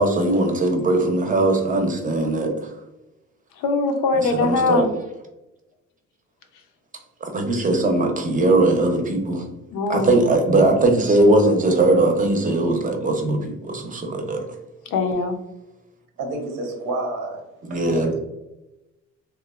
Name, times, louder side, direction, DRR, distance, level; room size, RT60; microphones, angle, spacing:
voice 1, 0.0-2.7 4.2-4.9 7.2-9.4 9.9-14.5 17.7-18.1, right 2 dB, 25° right, 4 dB, 0.6 m, -20 dB
voice 2, 3.6-4.9 9.7-10.3 14.9-15.4, left 4 dB, 85° left, 5 dB, 0.5 m, -22 dB
voice 3, 16.2-17.4 17.7-18.1, right 2 dB, 85° right, 2 dB, 0.8 m, -29 dB
2.9 x 2.1 x 2.3 m, 0.98 s
cardioid pair, 90°, 30 cm